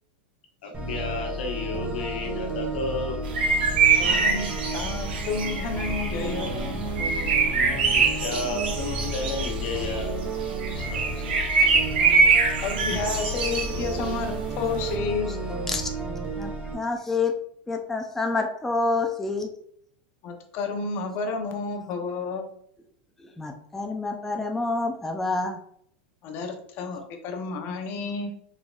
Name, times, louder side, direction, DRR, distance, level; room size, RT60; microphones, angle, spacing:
voice 1, 0.6-3.2 7.6-10.2 10.7-11.2 11.5-11.7, left 3 dB, 90° left, 2 dB, 1.0 m, -32 dB
sound 1, 0.7-16.7, right 2 dB, 20° right, 0.8 m, -32 dB
sound 2, 3.2-14.9, right 5 dB, 85° right, 0.9 m, -24 dB
voice 2, 4.0-6.8 12.6-15.3 20.2-22.6 26.2-28.4, left 4 dB, 45° left, 4 dB, 0.7 m, -31 dB
voice 3, 16.4-17.4 17.7-19.5 23.2-25.6, left 3 dB, 5° left, 3 dB, 0.4 m, -28 dB
3.9 x 3.5 x 2.4 m, 0.67 s
supercardioid pair, 135°, 5 cm